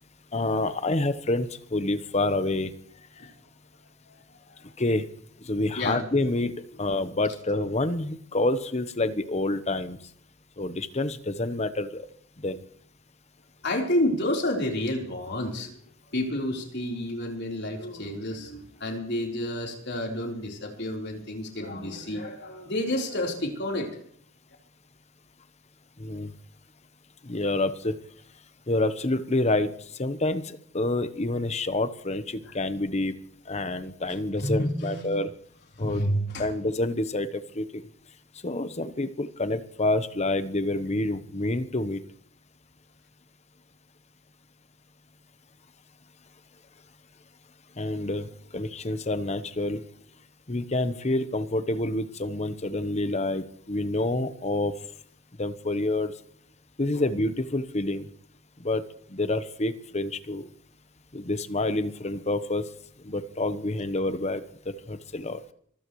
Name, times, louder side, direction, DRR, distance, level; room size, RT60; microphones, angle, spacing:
voice 1, 0.3-2.7 4.8-5.0 5.4-6.5 6.8-10.0 10.6-12.1 12.4-12.6 26.0-26.3 27.2-27.9 28.7-29.7 30.0-33.1 33.5-35.3 35.8-36.0 36.4-37.8 38.4-42.0 47.8-48.3 48.5-49.8 50.5-54.7 55.4-56.1 56.8-58.1 58.6-58.8 59.1-60.5 61.1-62.6 63.0-64.4 64.7-65.4, left 2 dB, 30° left, 11 dB, 1.0 m, -28 dB
voice 2, 13.6-15.8 16.1-23.9 32.4-32.6 34.4-35.2 35.8-36.5 56.9-57.1, left 1 dB, 55° left, 0 dB, 4.0 m, -30 dB
25.0 x 15.0 x 3.2 m, 0.63 s
head